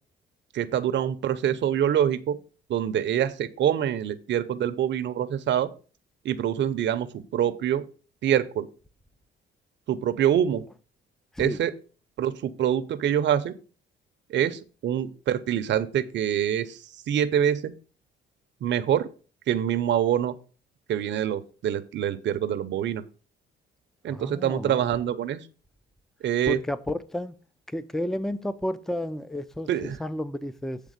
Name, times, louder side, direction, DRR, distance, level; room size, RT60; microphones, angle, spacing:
voice 1, 0.5-2.4 2.7-5.7 6.2-7.8 8.2-8.7 9.9-10.6 11.4-11.7 12.2-13.5 14.3-16.8 17.1-17.7 18.6-19.1 19.5-20.3 20.9-23.0 24.0-25.4 26.2-26.6 29.7-30.0, right 10 dB, 65° right, 0.7 m, -25 dB
voice 2, 24.1-24.8 26.5-27.4 27.7-30.8, left 1 dB, ahead, 0.5 m, -31 dB
8.3 x 3.5 x 6.5 m
cardioid pair, 90°, 20 cm